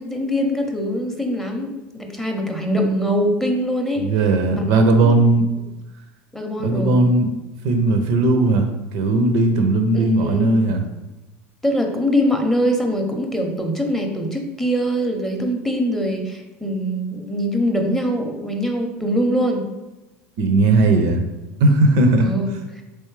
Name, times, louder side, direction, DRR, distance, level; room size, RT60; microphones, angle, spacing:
voice 1, 0.0-4.1 4.5-5.2 6.3-7.0 9.9-10.5 11.6-19.6 22.2-22.8, equal, 5° left, 3 dB, 0.6 m, -23 dB
voice 2, 4.0-5.5 6.6-7.3 7.6-10.8 20.4-21.2 21.6-22.3, right 2 dB, 70° right, 6 dB, 0.5 m, -17 dB
3.3 x 3.1 x 3.2 m, 1.0 s
hypercardioid pair, 80°, 7 cm